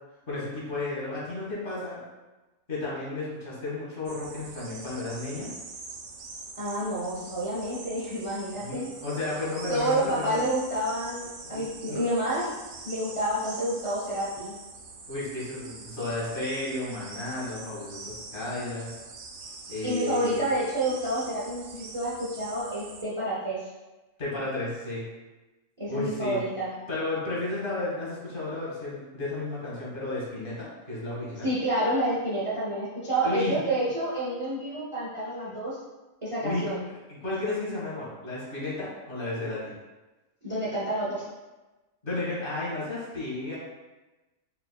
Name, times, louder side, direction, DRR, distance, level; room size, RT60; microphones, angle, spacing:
voice 1, 0.3-2.0 2.7-5.5 8.6-10.4 11.5-12.0 15.1-18.9 19.7-20.4 24.2-25.0 25.9-26.4 26.9-31.5 33.2-33.6 36.4-36.8 37.1-39.7 42.0-43.6, left 2 dB, 40° left, -7 dB, 1.6 m, -33 dB
sound 1, 4.1-23.0, right 4 dB, 85° right, 1.1 m, -44 dB
voice 2, 6.6-8.8 9.7-12.5 12.8-14.6 19.8-23.7 25.8-26.7 31.4-35.8 36.2-36.8 40.4-41.3, right 1 dB, 30° right, -7 dB, 0.7 m, -29 dB
4.3 x 4.3 x 2.3 m, 1.1 s
omnidirectional pair, 1.4 m